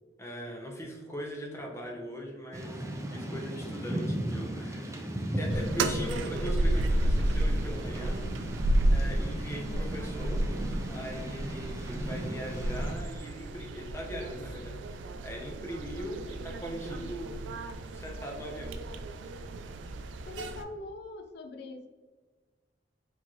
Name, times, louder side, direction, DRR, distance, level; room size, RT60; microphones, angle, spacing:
voice 1, 0.2-5.0 5.4-8.2 8.9-10.4 10.9-17.5 17.9-18.8 20.4-20.5, equal, 15° left, 0 dB, 0.7 m, -40 dB
Thunder / Rain, 2.5-12.9, right 1 dB, 15° right, 0.4 m, -36 dB
sound 1, 5.5-20.6, right 1 dB, 85° right, 0.3 m, -32 dB
voice 2, 9.5-10.0 20.3-21.9, left 2 dB, 60° left, 5 dB, 0.5 m, -43 dB
4.4 x 2.7 x 3.0 m, 1.3 s
head